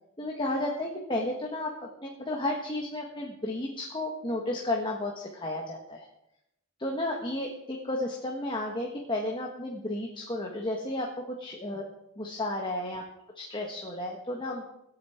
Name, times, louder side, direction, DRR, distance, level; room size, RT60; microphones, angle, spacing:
voice 1, 0.2-6.1 6.8-11.9 12.2-13.0 13.4-14.6, left 1 dB, 20° left, 0 dB, 1.6 m, -33 dB
24.0 x 8.6 x 4.6 m, 0.83 s
head